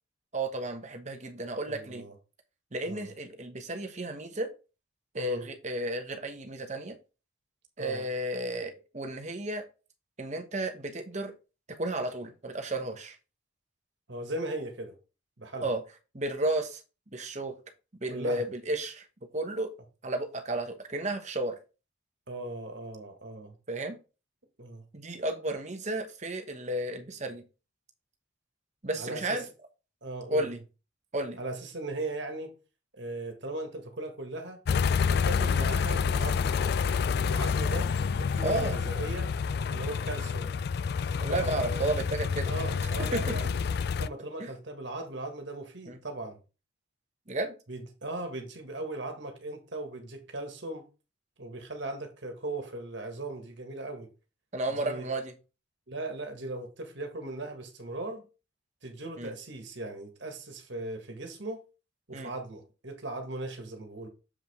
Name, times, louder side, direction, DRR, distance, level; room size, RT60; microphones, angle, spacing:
voice 1, 0.3-2.1 2.7-4.5 5.1-7.0 7.8-9.7 10.2-11.3 11.8-13.2 15.6-15.8 16.1-16.8 17.1-17.5 18.0-19.1 19.3-19.7 20.0-21.6 23.7-24.0 24.9-27.4 28.8-29.4 30.3-30.6 31.1-31.4 38.4-38.8 41.2-42.5 42.8-43.3 44.4-44.5 45.9-46.0 47.3-47.5 54.5-55.3 59.2-59.3 62.1-62.3, right 1 dB, 35° right, 1.1 m, -33 dB
voice 2, 1.6-2.1 2.9-3.1 5.1-5.5 7.8-8.1 14.1-14.9 15.4-15.7 18.1-18.5 22.3-23.6 24.6-24.8 29.0-29.5 30.0-30.5 31.4-32.6 33.0-34.6 35.0-36.6 37.2-39.3 39.7-40.6 41.3-41.9 42.5-43.5 44.0-46.4 47.7-50.9 51.4-54.1 54.7-55.1 55.9-58.3 58.8-61.6 62.1-64.1, right 2 dB, 60° right, 1.7 m, -38 dB
sound 1, 34.7-44.1, left 6 dB, 55° left, 0.3 m, -28 dB
7.4 x 5.0 x 3.6 m
head